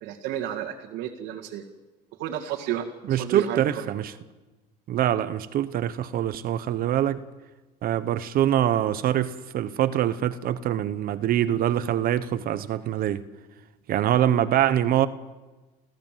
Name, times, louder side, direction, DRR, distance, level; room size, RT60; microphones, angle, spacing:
voice 1, 0.0-1.6 2.2-3.9, right 10 dB, 75° right, 2.1 m, -32 dB
voice 2, 3.1-4.1 4.9-7.2 7.8-13.2 13.9-15.1, right 11 dB, 50° right, 1.0 m, -24 dB
29.5 x 14.5 x 7.6 m
cardioid pair, 125°, 19 cm